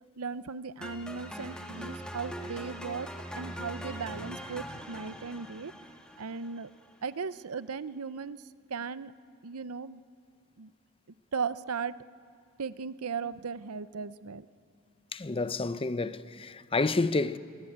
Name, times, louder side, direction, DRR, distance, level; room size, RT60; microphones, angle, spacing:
voice 1, 0.2-3.1 3.3-5.7 6.2-6.7 7.0-8.4 8.7-9.1 9.4-10.0 10.6-10.7 11.3-11.9 12.6-14.5, right 5 dB, 80° right, 0.7 m, -37 dB
sound 1, 0.8-6.9, equal, 5° left, 2.0 m, -42 dB
voice 2, 15.1-17.4, left 3 dB, 25° left, 0.7 m, -29 dB
27.5 x 22.5 x 8.7 m
head